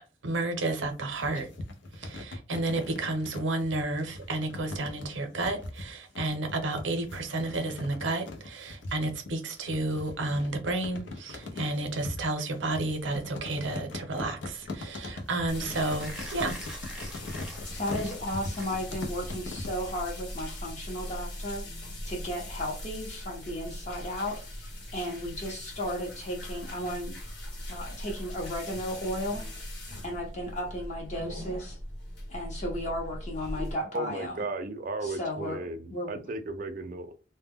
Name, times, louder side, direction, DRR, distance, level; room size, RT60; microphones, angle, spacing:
voice 1, 0.2-1.5 1.9-16.6, right 2 dB, 85° right, 0.6 m, -31 dB
sound 1, 0.8-19.9, left 2 dB, 90° left, 0.6 m, -41 dB
Mechanisms, 13.2-19.1, right 1 dB, 5° right, 0.6 m, -46 dB
sound 2, 15.5-33.7, left 1 dB, 60° left, 1.0 m, -40 dB
voice 2, 17.8-27.2 27.7-29.4 30.0-31.8 32.3-34.4 35.0-35.6 35.9-36.2, equal, 40° left, 0.7 m, -35 dB
voice 3, 33.9-37.1, right 2 dB, 45° right, 0.4 m, -35 dB
2.1 x 2.1 x 3.4 m
head